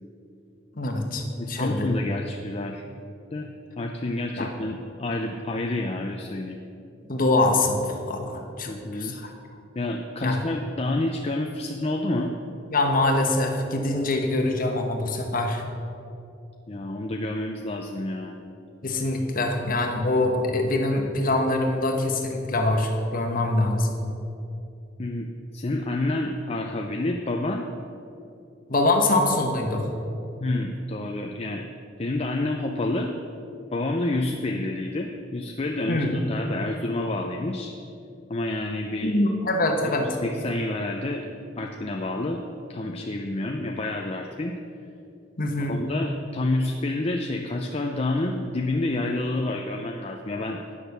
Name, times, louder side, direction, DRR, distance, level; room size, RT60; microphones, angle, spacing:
voice 1, 0.8-1.9 4.4-4.5 7.1-9.3 10.2-10.4 12.7-15.6 18.8-23.9 28.7-29.9 35.9-36.1 39.0-40.2 45.4-45.8, left 2 dB, 50° left, 3 dB, 1.2 m, -24 dB
voice 2, 1.4-2.8 3.3-3.5 3.8-6.6 8.7-9.2 9.8-12.4 16.7-18.4 25.0-27.7 30.4-31.7 32.0-33.1 33.7-37.7 38.3-39.2 39.8-41.3 41.6-42.4 42.7-44.6 45.7-50.6, left 2 dB, 35° left, 2 dB, 0.5 m, -28 dB
10.0 x 6.6 x 6.6 m, 2.7 s
head